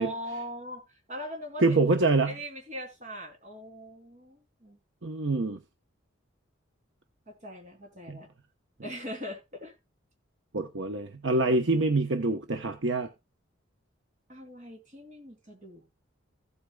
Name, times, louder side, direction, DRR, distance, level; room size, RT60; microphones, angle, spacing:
voice 1, 0.0-1.8 2.2-4.8 7.3-8.3 8.8-9.7 14.3-15.8, equal, 40° right, 3.2 m, -41 dB
voice 2, 1.6-2.3 5.0-5.6 8.1-8.2 10.5-13.1, right 2 dB, 65° right, 0.9 m, -25 dB
15.5 x 8.3 x 2.3 m
head